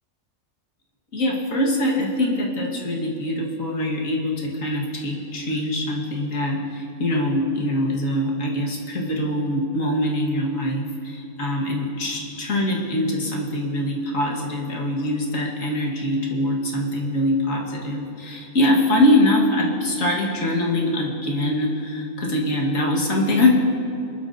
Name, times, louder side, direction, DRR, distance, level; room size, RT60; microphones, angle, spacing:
voice 1, 1.1-23.5, left 1 dB, 80° left, -2 dB, 2.1 m, -23 dB
23.0 x 12.0 x 2.7 m, 2.8 s
omnidirectional pair, 1.4 m